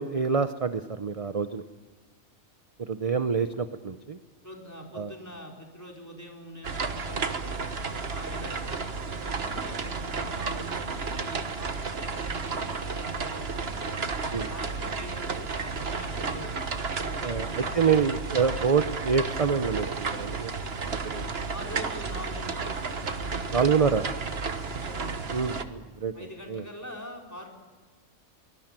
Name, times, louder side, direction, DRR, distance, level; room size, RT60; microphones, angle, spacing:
voice 1, 0.0-1.6 2.8-4.2 5.0-5.1 14.3-14.5 17.2-17.5 17.7-20.5 21.1-21.2 23.5-24.0 25.3-26.1 26.5-26.6, right 6 dB, 35° right, 10 dB, 0.7 m, -26 dB
voice 2, 4.4-7.6 8.1-8.7 9.1-16.5 17.0-18.2 21.2-23.8 24.4-25.3 26.1-27.6, equal, 10° left, 0 dB, 4.5 m, -44 dB
sound 1, 6.6-25.6, right 4 dB, 50° right, 1.5 m, -32 dB
23.5 x 19.5 x 9.1 m, 1.4 s
omnidirectional pair, 1.4 m